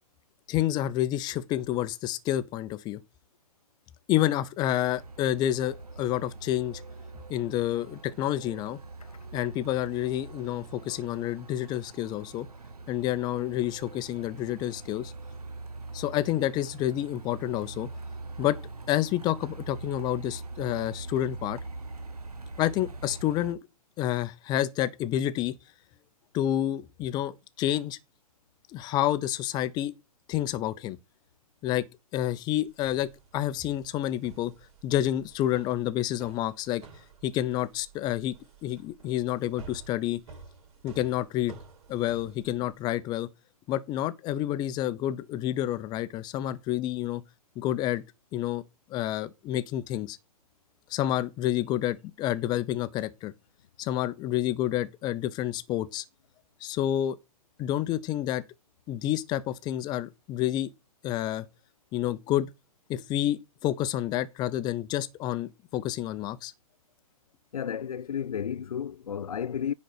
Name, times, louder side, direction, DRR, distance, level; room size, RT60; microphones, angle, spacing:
voice 1, 0.5-3.0 4.1-6.8 7.3-8.8 9.3-12.5 12.9-15.1 15.9-17.9 18.4-18.6 18.9-21.6 22.6-23.6 24.0-25.6 26.3-28.0 28.7-29.9 30.3-31.0 31.6-31.9 32.1-34.5 34.8-36.8 37.2-38.3 38.6-40.2 40.8-41.5 41.9-43.3 43.7-47.2 47.6-48.0 48.3-48.6 48.9-50.2 50.9-53.3 53.8-56.0 56.6-57.2 57.6-58.4 58.9-60.7 61.0-61.5 61.9-62.5 62.9-66.5, left 13 dB, 20° left, 0.8 m, -29 dB
Truck, 4.9-23.5, right 3 dB, 85° right, 1.1 m, -43 dB
sound 1, 32.7-42.9, right 5 dB, 50° right, 4.2 m, -51 dB
voice 2, 67.5-69.7, left 8 dB, 70° left, 0.4 m, -33 dB
10.0 x 4.2 x 6.8 m
figure-of-eight pair, 120°, 19 cm